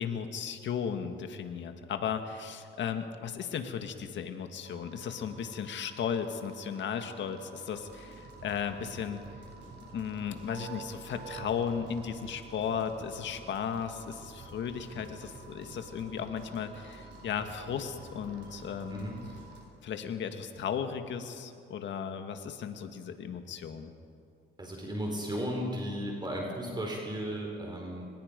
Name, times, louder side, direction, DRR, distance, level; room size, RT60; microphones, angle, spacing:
voice 1, 0.0-9.3 9.9-19.1 19.8-23.9, left 7 dB, 70° left, 7 dB, 1.9 m, -35 dB
sound 1, 4.6-19.6, right 5 dB, 55° right, 4.6 m, -52 dB
sound 2, 7.7-19.9, right 2 dB, 75° right, 6.7 m, -51 dB
voice 2, 18.9-19.2 24.6-28.1, equal, 20° right, 0 dB, 4.4 m, -35 dB
24.5 x 20.0 x 5.3 m, 2.5 s
cardioid pair, 90°, 20 cm